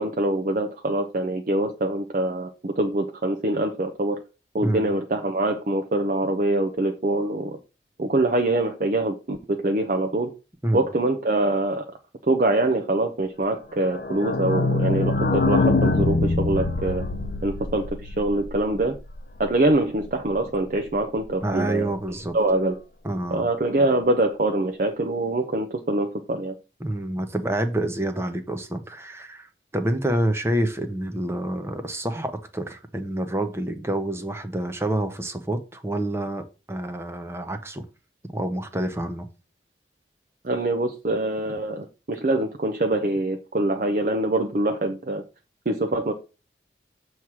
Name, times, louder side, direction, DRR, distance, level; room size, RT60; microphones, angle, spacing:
voice 1, 0.0-4.2 4.5-7.6 8.0-10.3 10.7-11.9 12.3-17.0 17.4-19.0 19.4-21.9 22.3-22.7 23.3-26.5 40.4-45.2 45.7-46.1, right 2 dB, 45° right, 0.6 m, -24 dB
sound 1, 13.9-19.4 19.7-19.8 20.0-20.1 20.4-20.5, left 3 dB, 55° left, 0.7 m, -24 dB
voice 2, 21.4-22.3 23.0-23.4 26.8-29.5 29.7-37.9 38.3-39.3, right 1 dB, 15° right, 0.8 m, -27 dB
7.1 x 3.1 x 6.0 m
head